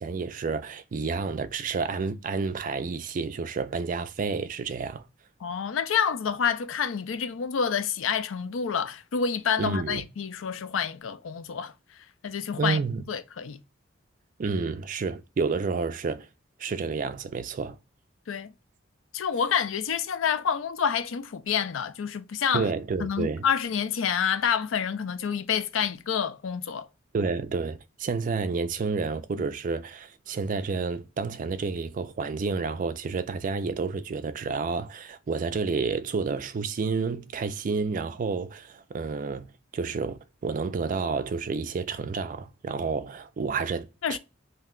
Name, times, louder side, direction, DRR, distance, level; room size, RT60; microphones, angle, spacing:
voice 1, 0.0-5.0 9.6-10.0 12.6-13.0 14.4-16.3 16.6-17.8 22.5-23.4 27.1-44.2, right 4 dB, 45° right, 0.4 m, -30 dB
voice 2, 5.4-11.7 12.2-12.8 13.1-13.6 18.3-18.5 19.1-22.7 23.0-26.9 29.4-29.5 44.0-44.2, left 7 dB, 90° left, 0.5 m, -28 dB
2.7 x 2.2 x 3.6 m
head